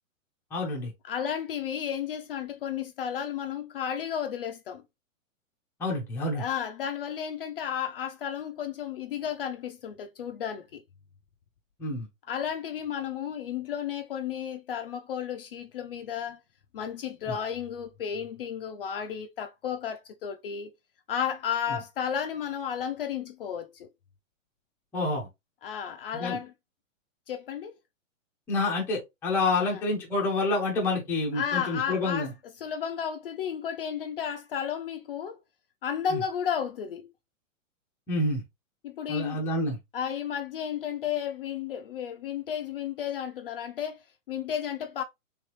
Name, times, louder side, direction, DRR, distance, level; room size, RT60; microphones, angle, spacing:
voice 1, 0.5-0.9 5.8-6.4 11.8-12.1 17.3-17.4 24.9-25.3 26.2-26.4 28.5-32.3 38.1-38.4 39.1-39.8, left 2 dB, 5° left, 0.6 m, -28 dB
voice 2, 1.0-4.8 6.3-10.8 12.3-16.4 16.7-20.7 21.1-23.9 25.6-26.5 27.3-27.7 29.6-29.8 31.3-32.3 32.6-35.4 35.8-37.1 38.8-39.5 39.9-45.0, left 8 dB, 45° left, 0.5 m, -33 dB
3.4 x 3.3 x 2.9 m
hypercardioid pair, 160°, 39 cm